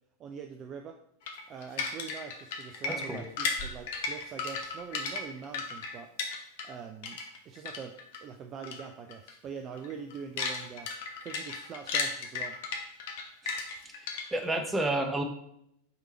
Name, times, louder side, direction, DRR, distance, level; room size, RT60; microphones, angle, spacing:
voice 1, 0.2-1.0 1.5-6.1 6.6-7.2 7.5-10.9 11.2-12.6, right 6 dB, 30° right, 5 dB, 0.4 m, -43 dB
sound 1, 1.3-6.8 7.0-8.2 8.6-8.8 9.1-9.3 9.7-14.5, left 4 dB, 50° left, 1.0 m, -35 dB
voice 2, 2.9-3.3 13.4-13.6 14.0-15.2, right 2 dB, 10° right, 5 dB, 0.9 m, -31 dB
5.7 x 3.8 x 4.3 m, 0.76 s
figure-of-eight pair, 90°, 0 cm